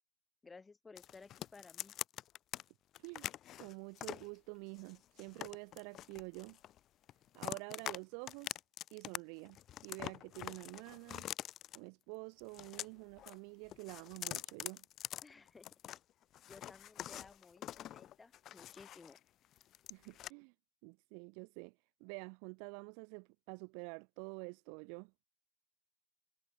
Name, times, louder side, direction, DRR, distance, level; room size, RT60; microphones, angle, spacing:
voice 1, 0.4-1.9 15.2-15.7 16.4-19.2, left 4 dB, 10° left, 2.1 m, -57 dB
sound 1, 1.0-2.6 2.9-4.3 4.8-6.8 7.1-8.0 8.3-9.2 9.4-11.8 12.4-13.4 13.7-16.0 16.3-19.2 19.5-20.3, left 12 dB, 30° left, 0.4 m, -45 dB
voice 2, 3.6-6.6 7.3-8.6 8.9-9.6 9.8-11.3 11.7-14.8 19.9-20.5 20.8-21.7 22.0-25.1, right 40 dB or more, 45° right, 0.7 m, -48 dB
figure-of-eight pair, 90°, 0 cm